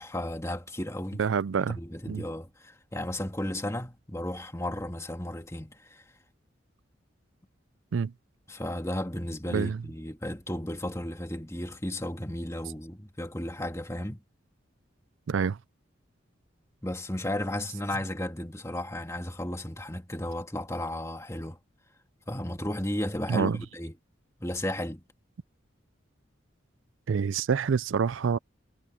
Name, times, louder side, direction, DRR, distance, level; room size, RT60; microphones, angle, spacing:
voice 1, 0.0-1.2 1.7-6.0 8.5-14.2 16.8-21.6 22.3-23.9 24.4-25.0, left 1 dB, 15° left, 2.3 m, -34 dB
voice 2, 1.2-1.8 2.1-2.2 7.9-8.1 9.5-9.8 15.3-15.6 23.3-23.6 27.1-28.4, right 6 dB, 80° right, 0.4 m, -27 dB
head